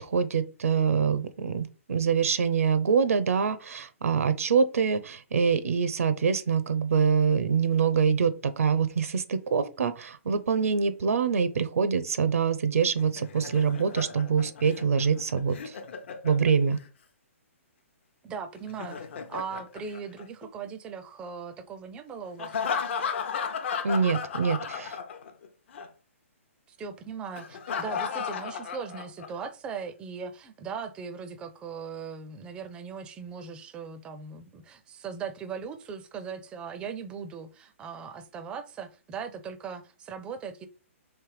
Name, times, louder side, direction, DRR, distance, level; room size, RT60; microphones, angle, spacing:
voice 1, 0.0-15.8 16.2-16.8 23.8-25.0, right 6 dB, 85° right, 0.6 m, -25 dB
Laughter, 12.8-16.9 18.5-20.7 22.4-25.5 25.7-25.9 27.4-29.5, left 6 dB, 55° left, 0.7 m, -35 dB
voice 2, 18.2-22.6 26.7-40.7, right 6 dB, 15° right, 0.4 m, -39 dB
3.3 x 3.2 x 4.7 m
hypercardioid pair, 155°, 8 cm